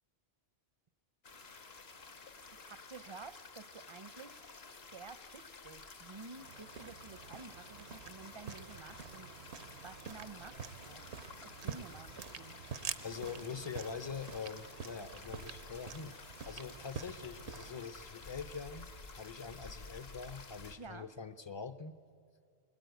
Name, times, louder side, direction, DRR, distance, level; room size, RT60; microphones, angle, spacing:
sound 1, 1.2-20.8, left 3 dB, 70° left, 1.6 m, -52 dB
voice 1, 2.5-4.4 4.9-9.5 9.8-11.1 11.4-12.6 20.8-21.1, right 4 dB, 35° right, 14 dB, 0.5 m, -51 dB
sound 2, 6.4-17.9, right 7 dB, 90° right, 1.1 m, -47 dB
voice 2, 13.0-16.2 16.4-22.0, left 5 dB, 35° left, 13 dB, 0.5 m, -44 dB
21.0 x 20.5 x 9.2 m, 2.4 s
omnidirectional pair, 1.1 m